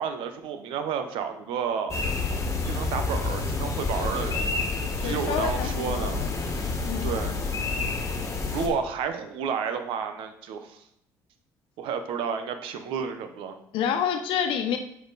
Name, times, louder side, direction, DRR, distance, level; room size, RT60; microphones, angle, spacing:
voice 1, 0.0-2.0 2.7-4.5 5.0-6.2 7.0-7.4 8.5-10.8 11.8-13.5, right 6 dB, 75° right, 8 dB, 0.9 m, -31 dB
sound 1, 1.9-8.7, left 3 dB, 35° left, 1.7 m, -29 dB
voice 2, 5.0-6.3 6.8-7.1 13.7-14.8, left 8 dB, 75° left, 6 dB, 1.0 m, -28 dB
9.4 x 4.3 x 4.1 m, 0.74 s
supercardioid pair, 75°, 9 cm